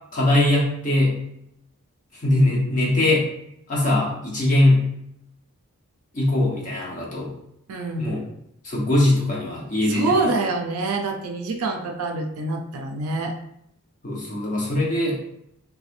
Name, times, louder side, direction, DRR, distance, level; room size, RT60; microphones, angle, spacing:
voice 1, 0.1-1.2 2.1-3.3 3.7-4.8 6.1-7.3 8.0-8.3 8.6-10.3 14.0-15.2, left 1 dB, 35° left, -4 dB, 0.7 m, -21 dB
voice 2, 7.7-8.1 9.8-13.3, right 3 dB, 75° right, 4 dB, 0.4 m, -25 dB
3.3 x 3.1 x 2.5 m, 0.76 s
head